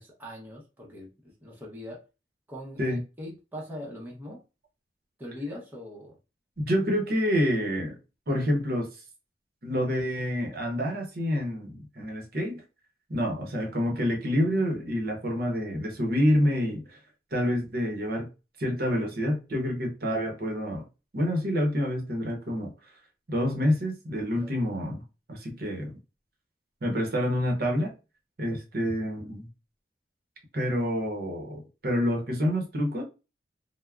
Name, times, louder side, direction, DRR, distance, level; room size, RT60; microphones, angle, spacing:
voice 1, 0.0-2.0 2.5-4.4 5.2-6.2 24.3-24.5, left 1 dB, 10° right, 0.7 m, -41 dB
voice 2, 6.6-8.0 8.3-8.9 9.6-12.6 13.1-17.0 17.3-18.3 18.6-20.8 21.1-22.7 23.3-25.0 25.3-25.9 26.8-27.9 28.4-29.5 30.5-33.0, equal, 55° right, 0.7 m, -27 dB
3.4 x 2.0 x 2.3 m
head